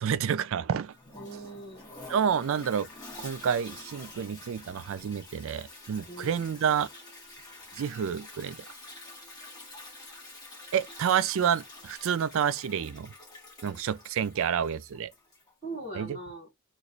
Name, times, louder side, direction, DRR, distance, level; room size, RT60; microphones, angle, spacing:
voice 1, 0.0-0.9 2.1-2.9 3.2-6.9 7.8-8.6 10.7-13.1 13.6-15.1 15.9-16.2, right 8 dB, 60° right, 0.3 m, -29 dB
Toilet flush, 0.9-15.5, left 2 dB, 15° left, 1.2 m, -48 dB
voice 2, 1.1-1.9 6.1-6.6 15.6-16.5, right 2 dB, 30° right, 1.6 m, -41 dB
3.0 x 2.3 x 3.8 m
head